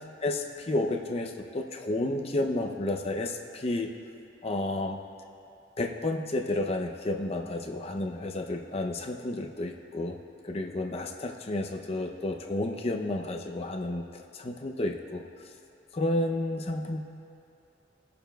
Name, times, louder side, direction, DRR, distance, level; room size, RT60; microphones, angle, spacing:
voice 1, 0.2-3.9 4.4-5.0 5.8-10.2 10.4-14.1 14.3-15.2 15.9-17.0, left 2 dB, 35° left, 3 dB, 0.5 m, -31 dB
19.5 x 6.8 x 2.2 m, 2.7 s
head